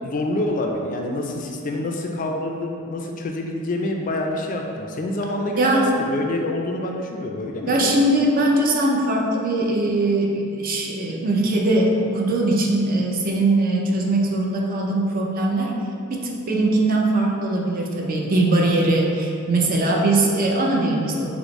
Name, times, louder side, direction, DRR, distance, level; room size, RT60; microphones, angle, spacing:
voice 1, 0.0-8.0, left 1 dB, 40° left, 2 dB, 0.3 m, -27 dB
voice 2, 5.6-5.9 7.7-15.7 16.1-21.4, right 2 dB, 45° right, -1 dB, 0.5 m, -21 dB
6.0 x 2.0 x 3.1 m, 2.5 s
head